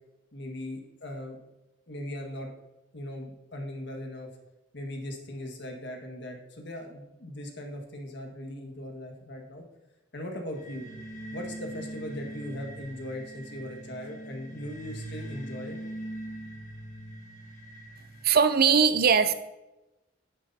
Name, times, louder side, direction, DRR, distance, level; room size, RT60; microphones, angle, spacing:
voice 1, 0.3-1.4 1.9-2.5 2.9-4.3 4.7-9.6 10.1-10.9 11.3-15.8, left 1 dB, 60° left, 2 dB, 1.7 m, -39 dB
sound 1, 10.5-18.2, right 1 dB, 40° left, 1.4 m, -42 dB
voice 2, 18.2-19.3, right 6 dB, 50° right, 11 dB, 0.6 m, -20 dB
10.5 x 10.0 x 2.8 m, 0.99 s
head